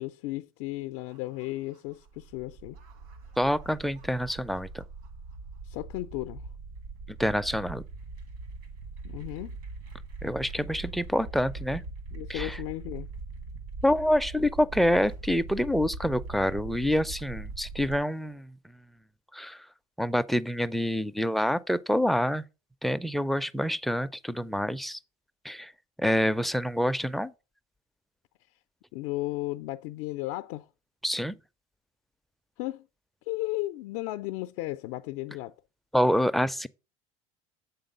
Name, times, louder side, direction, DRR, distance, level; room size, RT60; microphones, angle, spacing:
voice 1, 0.0-2.8 5.6-6.5 9.0-9.5 12.1-13.1 28.9-30.7 32.6-32.9 33.3-35.5, left 18 dB, 70° left, 0.4 m, -35 dB
sound 1, 1.0-18.0, right 3 dB, 80° right, 1.5 m, -41 dB
voice 2, 3.4-4.8 7.2-7.8 10.2-11.8 12.3-12.6 13.8-18.5 19.3-19.6 20.0-22.4 22.8-25.0 25.4-25.7 26.0-27.3 31.0-31.3 35.9-36.7, equal, ahead, 0.4 m, -27 dB
8.0 x 3.7 x 5.3 m
supercardioid pair, 95°, 18 cm